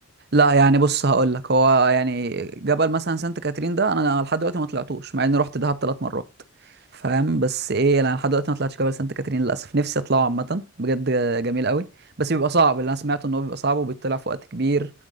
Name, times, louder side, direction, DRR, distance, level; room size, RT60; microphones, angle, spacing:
voice 1, 0.3-6.2 6.9-11.9 12.2-14.9, right 3 dB, 50° right, 0.9 m, -22 dB
12.0 x 5.3 x 6.5 m
head